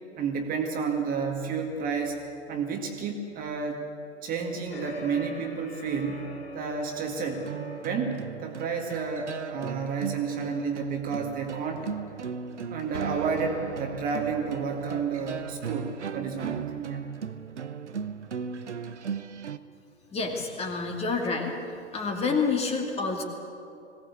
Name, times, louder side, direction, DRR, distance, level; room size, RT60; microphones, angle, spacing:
voice 1, 0.2-3.8 4.2-6.3 6.5-7.5 7.8-11.9 12.7-17.0, right 5 dB, 25° right, 3 dB, 2.0 m, -31 dB
sound 1, 4.7-9.4, left 1 dB, 70° left, 3.7 m, -43 dB
sound 2, 7.3-19.6, right 6 dB, 80° right, 1.0 m, -37 dB
voice 2, 20.1-21.5 21.9-23.2, left 4 dB, 20° left, 2 dB, 2.5 m, -28 dB
20.5 x 17.5 x 8.3 m, 2.7 s
figure-of-eight pair, 115°, 34 cm